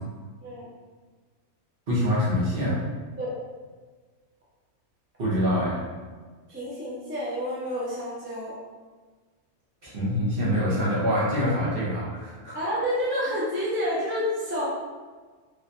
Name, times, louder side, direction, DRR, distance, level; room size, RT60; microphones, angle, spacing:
voice 1, 1.9-2.8 5.2-5.8 9.8-12.6, equal, 45° right, -7 dB, 1.0 m, -25 dB
voice 2, 6.5-8.6 12.5-14.6, equal, 15° right, -7 dB, 0.4 m, -29 dB
3.2 x 3.1 x 2.6 m, 1.4 s
omnidirectional pair, 1.5 m